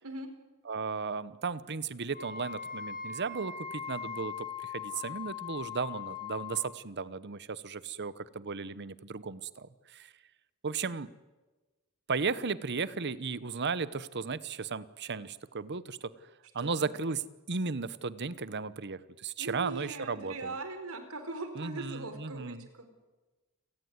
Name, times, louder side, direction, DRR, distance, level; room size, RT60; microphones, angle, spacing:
voice 1, 0.7-10.1 10.6-11.1 12.1-16.1 16.5-17.2 17.5-20.5 21.5-22.7, right 4 dB, 55° right, 17 dB, 1.0 m, -35 dB
Wind instrument woodwind instrument, 2.1-6.6, left 6 dB, 40° left, 4.6 m, -40 dB
voice 2, 16.6-16.9 19.4-22.9, right 3 dB, 85° right, 8 dB, 4.3 m, -40 dB
29.0 x 17.5 x 9.5 m, 1.2 s
head